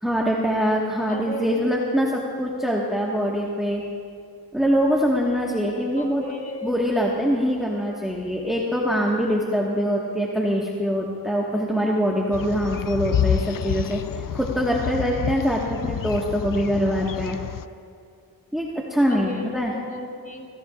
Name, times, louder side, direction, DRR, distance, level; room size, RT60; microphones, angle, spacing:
voice 1, 0.0-3.8 4.5-6.3 6.6-17.4 18.5-19.7, equal, ahead, -4 dB, 1.6 m, -23 dB
voice 2, 1.1-1.7 6.0-6.8 15.7-15.8 19.1-20.5, left 1 dB, 25° left, -2 dB, 3.5 m, -36 dB
sound 1, 12.3-17.6, left 9 dB, 60° left, 0.5 m, -28 dB
26.5 x 17.5 x 2.5 m, 2.3 s
wide cardioid pair, 75°, 37 cm